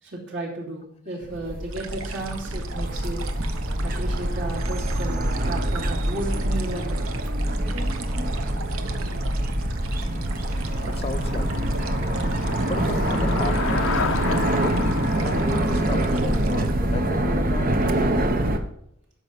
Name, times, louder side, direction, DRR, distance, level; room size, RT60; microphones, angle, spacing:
voice 1, 0.0-3.3 3.8-7.1, right 2 dB, 55° right, -3 dB, 3.0 m, -34 dB
sound 1, 1.2-18.6, right 1 dB, 40° right, 0.9 m, -25 dB
sound 2, 1.7-16.7, right 5 dB, 75° right, 1.0 m, -41 dB
Traffic noise roadway noise / Bicycle, 8.8-18.0, left 4 dB, 70° left, 0.7 m, -33 dB
voice 2, 10.8-11.7 12.7-14.1 15.2-17.8, left 3 dB, 25° left, 10 dB, 0.5 m, -34 dB
12.5 x 5.4 x 6.0 m, 0.72 s
head